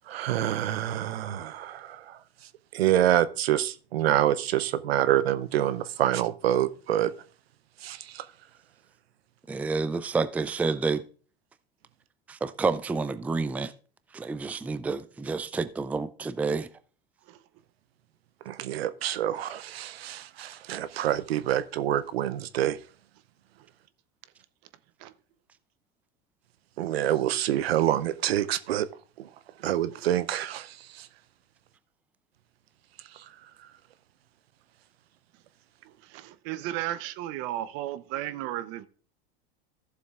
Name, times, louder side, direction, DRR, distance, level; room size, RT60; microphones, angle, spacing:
voice 1, 0.1-2.2 2.7-7.1 7.8-8.2 18.5-22.8 26.8-28.9 29.6-30.7 31.0-31.1, right 12 dB, 90° right, 0.6 m, -26 dB
voice 2, 9.5-11.0 12.3-13.7 14.1-16.7, right 4 dB, 5° right, 0.4 m, -29 dB
voice 3, 36.1-38.9, right 14 dB, 55° right, 0.8 m, -34 dB
15.0 x 7.0 x 2.4 m
hypercardioid pair, 100°, 30 cm